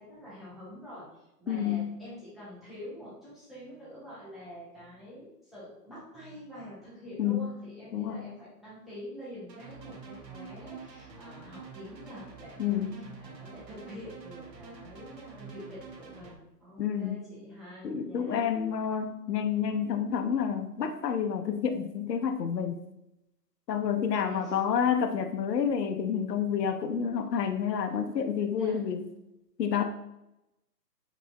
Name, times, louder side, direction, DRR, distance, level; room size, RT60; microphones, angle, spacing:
voice 1, 0.0-18.5 24.2-24.6 28.5-28.8, equal, ahead, -11 dB, 0.6 m, -46 dB
voice 2, 1.5-1.9 7.2-7.5 7.9-8.3 12.6-13.0 16.8-17.2 17.8-22.8 23.7-29.0 29.6-29.8, left 7 dB, 75° left, 6 dB, 0.6 m, -29 dB
sound 1, 9.5-16.4, right 5 dB, 85° right, 1.1 m, -47 dB
5.1 x 2.2 x 3.8 m, 0.91 s
hypercardioid pair, 180°, 50 cm